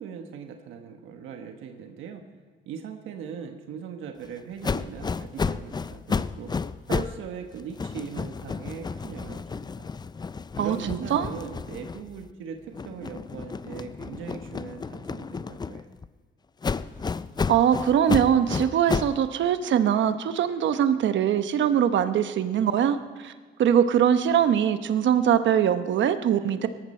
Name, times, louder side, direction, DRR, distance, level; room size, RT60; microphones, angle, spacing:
voice 1, 0.0-2.2 2.7-6.5 6.9-9.9 10.6-12.6 12.8-15.9, right 7 dB, 90° right, 5 dB, 1.3 m, -39 dB
sound 1, 4.6-7.2 7.5-12.3 12.7-16.1 16.6-19.2, left 5 dB, 20° left, 0.4 m, -32 dB
voice 2, 10.6-11.3 17.5-23.3 23.6-26.7, right 9 dB, 70° right, 10 dB, 0.9 m, -22 dB
17.5 x 14.0 x 4.3 m, 1.5 s
cardioid pair, 90°, 20 cm